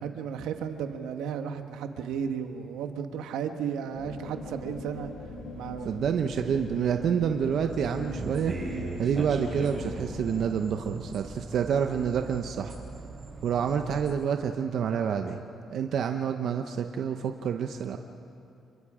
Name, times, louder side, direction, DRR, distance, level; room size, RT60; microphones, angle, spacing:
voice 1, 0.0-5.1 5.5-6.0, right 7 dB, 90° right, 7 dB, 1.3 m, -34 dB
sound 1, 3.9-10.5, left 3 dB, 85° left, 3.9 m, -41 dB
voice 2, 5.8-12.8 13.4-15.4 15.7-18.0, right 7 dB, 70° right, 6 dB, 0.9 m, -28 dB
sound 2, 7.7-14.1, right 3 dB, 25° right, 6.3 m, -39 dB
29.0 x 23.0 x 5.0 m, 2.7 s
cardioid pair, 90°, 0 cm